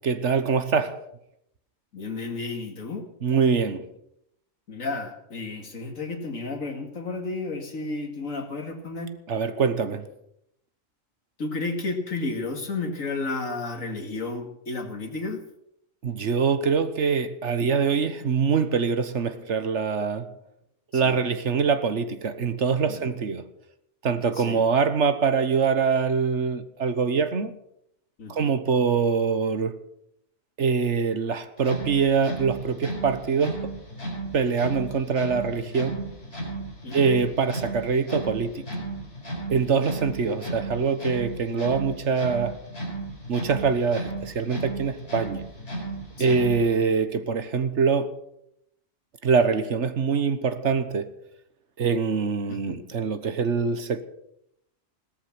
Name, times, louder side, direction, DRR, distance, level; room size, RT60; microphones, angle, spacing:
voice 1, 0.0-1.0 3.2-3.9 9.3-10.1 16.0-20.3 20.9-23.4 24.0-27.5 28.3-29.8 30.6-33.6 34.3-36.1 36.9-38.6 39.5-42.6 43.3-45.4 46.2-48.1 49.2-51.1 51.8-54.0, right 5 dB, 60° right, 1.4 m, -24 dB
voice 2, 1.9-3.1 4.7-9.2 11.4-15.5 20.9-21.2 22.9-23.1 24.3-24.6 28.2-28.5 36.8-37.1 39.6-39.9 46.2-46.5 52.5-52.8, left 3 dB, 80° left, 2.6 m, -32 dB
sound 1, 31.6-46.8, right 2 dB, 50° left, 4.7 m, -35 dB
17.5 x 13.5 x 6.0 m
omnidirectional pair, 1.4 m